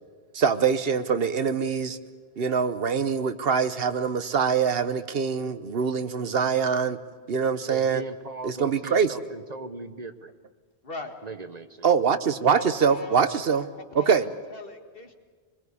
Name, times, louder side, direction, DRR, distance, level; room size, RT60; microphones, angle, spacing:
voice 1, 0.3-2.0 2.4-7.0 7.3-8.0 8.4-9.1 11.8-13.6 13.9-14.3, right 6 dB, 65° right, 12 dB, 1.1 m, -24 dB
voice 2, 7.7-10.3 11.2-11.9, right 3 dB, 40° right, 10 dB, 0.9 m, -39 dB
voice 3, 10.8-11.1 12.5-13.4 13.8-15.1, left 2 dB, 60° left, 4 dB, 2.1 m, -40 dB
23.0 x 21.0 x 8.4 m, 1.5 s
omnidirectional pair, 1.1 m